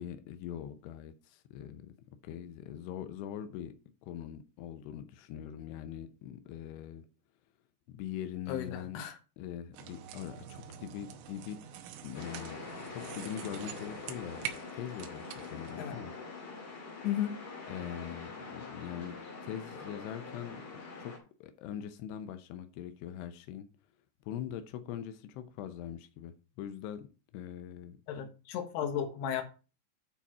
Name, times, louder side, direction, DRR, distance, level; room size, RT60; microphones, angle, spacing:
voice 1, 0.0-1.9 2.2-3.7 4.0-7.1 7.9-9.0 9.4-11.6 12.0-12.6 12.9-14.4 14.7-16.1 17.7-20.6 21.0-21.1 21.4-23.7 24.3-27.1 27.3-28.0, left 10 dB, 90° left, 2.3 m, -42 dB
voice 2, 8.5-9.2 15.8-16.0 17.0-17.3 28.1-29.4, left 9 dB, 70° left, 2.8 m, -34 dB
sound 1, 9.7-15.9, right 9 dB, 80° right, 3.5 m, -46 dB
sound 2, 12.1-21.2, left 4 dB, 45° left, 2.0 m, -44 dB
9.6 x 4.2 x 6.0 m
omnidirectional pair, 5.8 m